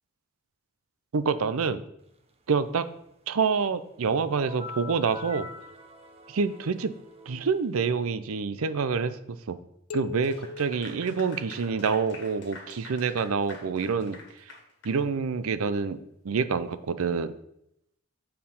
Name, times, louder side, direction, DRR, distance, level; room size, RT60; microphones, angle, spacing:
voice 1, 1.1-1.8 2.5-2.9 3.3-5.5 6.3-6.9 7.3-9.6 9.9-14.2 14.8-17.4, right 5 dB, 75° right, 13 dB, 0.5 m, -27 dB
sound 1, 4.3-7.9, left 2 dB, 30° right, 0.6 m, -44 dB
sound 2, 9.9-12.3, left 4 dB, 85° left, 0.4 m, -42 dB
Clapping / Applause, 10.1-15.0, left 3 dB, 55° left, 1.7 m, -46 dB
7.5 x 4.5 x 5.4 m, 0.77 s
head